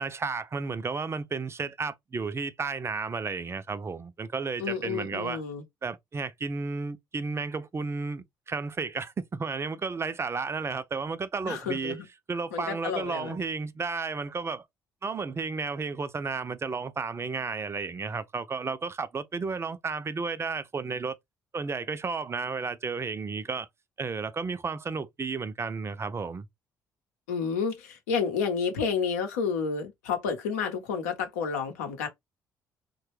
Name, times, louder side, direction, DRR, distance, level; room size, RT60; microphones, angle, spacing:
voice 1, 0.0-5.4 5.8-12.0 12.3-14.6 15.0-21.2 21.5-23.7 24.0-26.5, right 4 dB, 30° right, 0.5 m, -32 dB
voice 2, 4.6-5.6 11.4-12.1 12.5-13.4 27.3-32.1, left 6 dB, 90° left, 0.7 m, -30 dB
3.2 x 2.2 x 3.1 m
hypercardioid pair, 55°, 8 cm